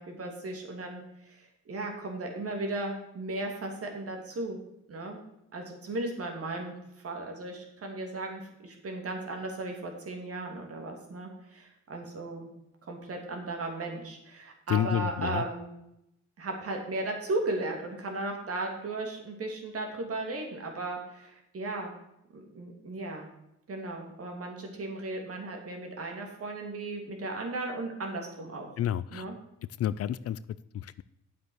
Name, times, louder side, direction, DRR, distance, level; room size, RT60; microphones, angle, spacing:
voice 1, 0.0-4.6 4.9-5.2 5.5-6.7 7.0-12.5 12.8-15.7 16.4-21.9 22.3-23.3 23.7-28.7 29.1-29.3, right 2 dB, 50° right, 3 dB, 2.9 m, -36 dB
voice 2, 14.7-15.4 28.8-29.3 29.8-30.4 30.7-31.0, left 11 dB, 55° left, 17 dB, 0.5 m, -29 dB
9.4 x 7.4 x 6.5 m, 0.81 s
cardioid pair, 90°, 30 cm